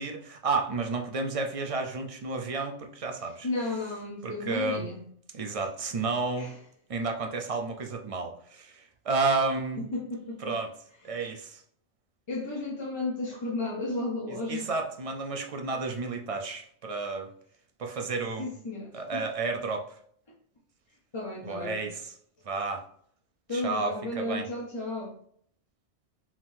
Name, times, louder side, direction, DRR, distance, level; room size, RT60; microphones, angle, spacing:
voice 1, 0.0-3.5 4.2-4.9 5.3-6.5 6.9-9.8 10.4-10.7 11.0-11.6 14.5-17.3 17.8-18.5 18.9-19.9 21.4-22.1 22.5-22.8 23.5-24.4, right 3 dB, 45° right, 3 dB, 0.4 m, -31 dB
voice 2, 3.4-5.0 6.4-6.6 9.8-10.5 11.0-11.2 12.3-14.7 18.4-19.2 21.1-21.8 23.5-25.1, left 2 dB, 30° left, -3 dB, 0.7 m, -33 dB
4.8 x 3.7 x 2.6 m, 0.62 s
omnidirectional pair, 1.2 m